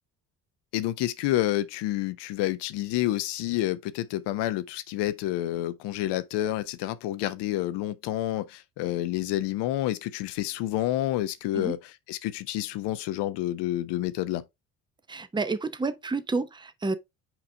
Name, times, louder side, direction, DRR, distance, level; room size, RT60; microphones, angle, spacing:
voice 1, 0.7-11.8 12.1-14.4, left 14 dB, 60° left, 0.9 m, -29 dB
voice 2, 15.1-16.9, right 3 dB, 10° right, 0.8 m, -30 dB
6.1 x 4.9 x 3.5 m
hypercardioid pair, 60°, 46 cm